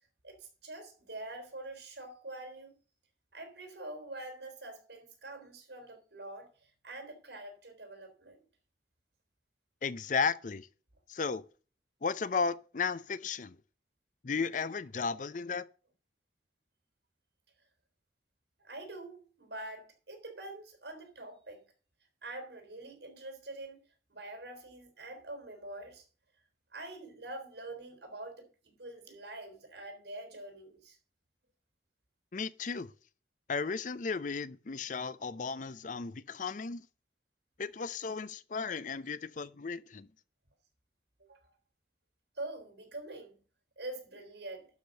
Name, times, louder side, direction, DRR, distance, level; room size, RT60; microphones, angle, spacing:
voice 1, 0.2-2.7 3.3-8.4 18.6-21.6 22.2-23.8 24.1-26.1 26.7-31.0 41.3-41.5 42.4-43.4 43.8-44.7, right 2 dB, 70° right, 3.7 m, -45 dB
voice 2, 9.8-10.7 11.1-11.4 12.0-13.6 14.2-15.7 32.3-32.9 33.5-36.9 37.6-40.1, left 5 dB, 45° left, 0.5 m, -34 dB
11.5 x 5.1 x 6.5 m
head